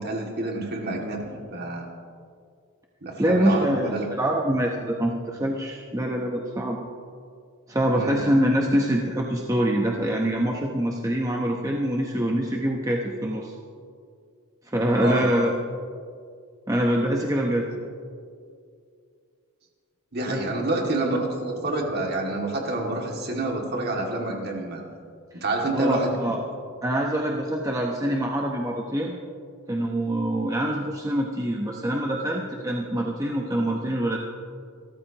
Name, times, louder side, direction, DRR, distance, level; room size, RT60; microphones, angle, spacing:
voice 1, 0.0-1.9 3.0-4.1 7.9-8.2 15.0-15.3 20.1-24.8 25.3-26.3, right 2 dB, 45° right, 0 dB, 2.3 m, -28 dB
voice 2, 3.2-6.8 7.7-13.5 14.7-15.5 16.7-17.7 20.3-20.6 25.7-26.4 26.8-29.1 29.7-34.2, right 1 dB, 15° right, -1 dB, 0.9 m, -25 dB
27.0 x 13.5 x 3.0 m, 2.3 s
head